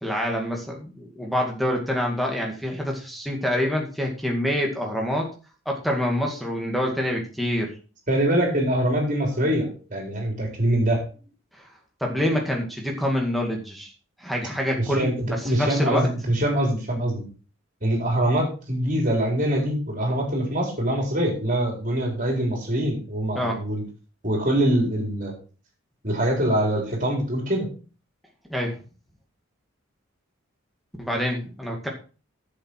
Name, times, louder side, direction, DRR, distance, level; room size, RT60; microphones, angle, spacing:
voice 1, 0.0-5.3 5.7-7.7 9.4-9.5 11.5-11.7 12.0-13.9 14.2-16.1 23.3-23.6 28.5-28.8 31.0-31.9, equal, ahead, 0 dB, 2.1 m, -26 dB
voice 2, 8.1-11.0 15.0-17.2 17.8-23.8 24.2-25.3 26.0-27.7, right 1 dB, 40° right, 0 dB, 4.2 m, -24 dB
10.0 x 7.5 x 4.7 m, 0.36 s
head